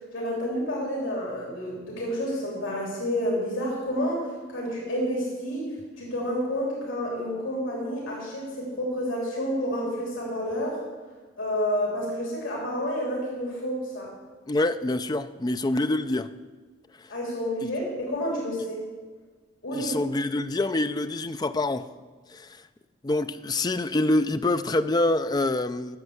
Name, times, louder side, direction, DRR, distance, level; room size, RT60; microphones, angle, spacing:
voice 1, 0.1-5.7 6.0-10.8 11.4-14.1 17.1-18.8 19.6-19.9, equal, 85° left, 3.5 m, -29 dB
voice 2, 14.5-16.3 19.7-21.9 22.3-22.6 23.0-26.0, left 2 dB, 20° left, 0.4 m, -26 dB
10.5 x 7.2 x 8.0 m
head